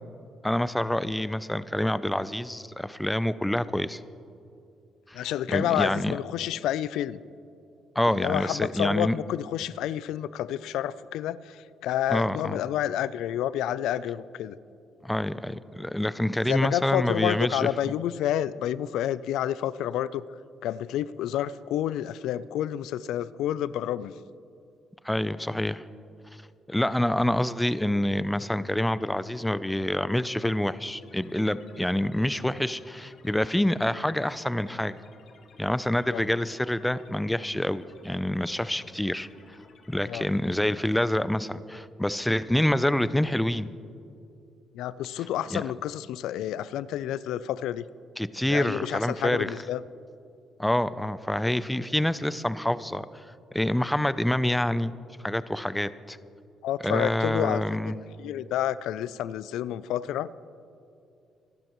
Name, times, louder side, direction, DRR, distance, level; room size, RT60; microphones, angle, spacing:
voice 1, 0.4-4.0 5.1-6.2 8.0-9.2 12.1-12.6 15.0-17.9 25.0-25.8 26.7-35.0 35.6-39.3 39.9-43.7 45.5-45.7 48.2-49.5 50.6-53.1 53.5-54.9 55.2-56.2 56.8-58.0, left 1 dB, 5° left, 15 dB, 0.5 m, -27 dB
voice 2, 5.1-7.2 8.1-14.6 16.4-20.2 20.6-24.1 36.1-36.2 40.1-40.2 44.7-47.9 48.5-49.8 56.6-57.9 58.2-60.3, left 11 dB, 85° left, 17 dB, 0.4 m, -29 dB
sound 1, 31.0-40.8, left 5 dB, 65° left, 1.8 m, -57 dB
25.5 x 12.0 x 3.1 m, 2.5 s
cardioid pair, 90°, 0 cm